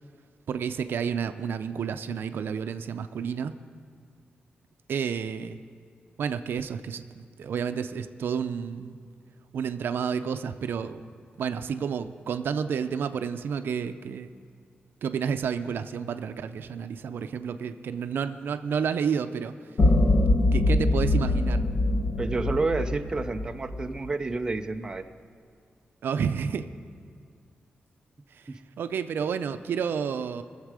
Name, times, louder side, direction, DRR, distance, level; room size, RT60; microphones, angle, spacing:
voice 1, 0.5-3.5 4.9-5.6 6.2-9.0 9.5-11.0 11.4-14.3 15.0-19.5 20.5-21.6 26.0-26.7 28.3-28.5 28.8-30.4, right 7 dB, 80° right, 10 dB, 0.5 m, -30 dB
sound 1, 19.8-24.1, left 2 dB, 45° left, 0.9 m, -23 dB
voice 2, 22.2-25.1 28.5-28.6, right 3 dB, 20° right, 7 dB, 0.5 m, -29 dB
22.0 x 7.4 x 4.9 m, 2.3 s
wide cardioid pair, 155°, 4 cm